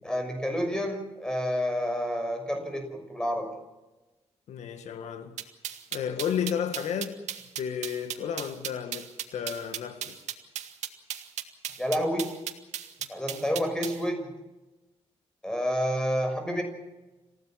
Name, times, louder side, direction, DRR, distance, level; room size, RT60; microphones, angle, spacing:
voice 1, 0.0-3.5 11.8-12.4 13.1-14.3 15.4-16.6, equal, 5° left, 6.1 m, -29 dB
voice 2, 4.5-5.4 5.9-7.1 7.6-10.2, left 8 dB, 85° left, 1.9 m, -32 dB
sound 1, 5.4-14.0, right 10 dB, 90° right, 2.0 m, -35 dB
27.5 x 16.5 x 7.5 m
cardioid pair, 125°, 11 cm